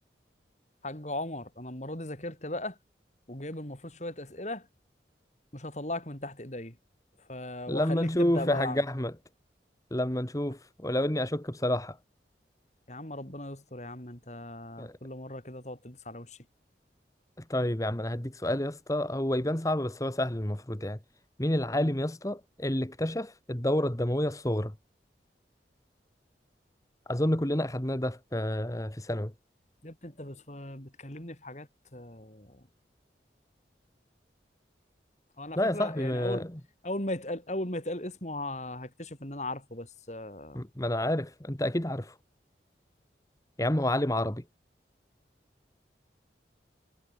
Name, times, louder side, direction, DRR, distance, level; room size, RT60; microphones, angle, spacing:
voice 1, 0.8-2.8 3.3-4.7 5.5-6.8 7.3-8.8 12.9-16.4 21.7-21.9 29.8-32.6 35.4-36.5 36.8-40.6, left 1 dB, 40° left, 4.7 m, -38 dB
voice 2, 7.7-9.1 9.9-12.0 14.8-14.9 17.5-21.0 21.4-24.7 27.1-29.3 35.5-36.5 40.5-42.1 43.6-44.4, left 1 dB, 20° left, 1.6 m, -29 dB
head